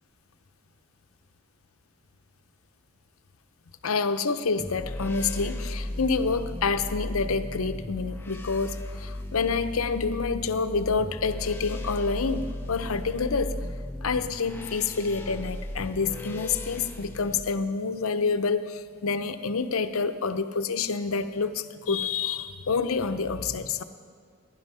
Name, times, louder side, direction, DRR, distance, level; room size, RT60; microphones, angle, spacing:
voice 1, 3.8-13.6 14.0-23.8, left 4 dB, 90° left, 10 dB, 0.7 m, -28 dB
sound 1, 4.6-17.4, left 1 dB, 10° left, 0.6 m, -36 dB
15.5 x 10.5 x 5.5 m, 2.2 s
head